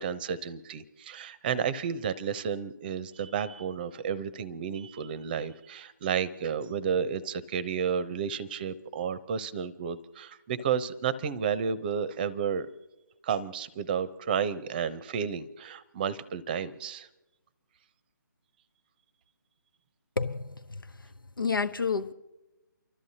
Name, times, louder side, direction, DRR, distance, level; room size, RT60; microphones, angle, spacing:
voice 1, 0.0-12.7 13.2-17.1, right 7 dB, 25° right, 0.7 m, -32 dB
voice 2, 20.2-20.8 21.4-22.1, left 5 dB, 90° left, 0.8 m, -29 dB
29.5 x 13.0 x 2.8 m
figure-of-eight pair, 150°, 11 cm